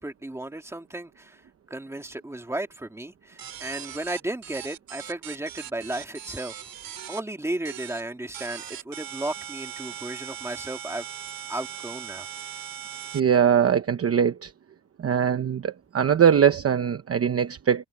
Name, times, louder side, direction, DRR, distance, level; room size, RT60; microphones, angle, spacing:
voice 1, 0.0-1.4 1.7-6.5 7.1-11.1 11.5-12.3, right 1 dB, 5° right, 2.2 m, -34 dB
sound 1, 3.4-7.2 7.6-8.0 8.3-13.2, right 10 dB, 55° right, 2.9 m, -39 dB
voice 2, 13.1-14.5 15.0-17.8, right 8 dB, 35° right, 0.9 m, -21 dB
cardioid pair, 175°, 41 cm